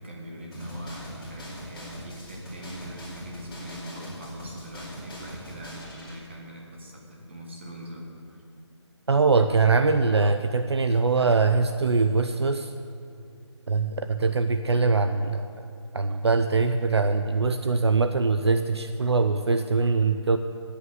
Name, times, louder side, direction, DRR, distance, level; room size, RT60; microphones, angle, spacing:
voice 1, 0.0-8.4, equal, 25° right, -1 dB, 1.5 m, -42 dB
sound 1, 0.5-6.1, equal, 5° left, 2.3 m, -41 dB
voice 2, 9.1-12.7 13.7-15.4 15.9-20.4, right 4 dB, 65° right, 8 dB, 0.5 m, -22 dB
9.4 x 8.4 x 8.0 m, 2.4 s
figure-of-eight pair, 180°, 15 cm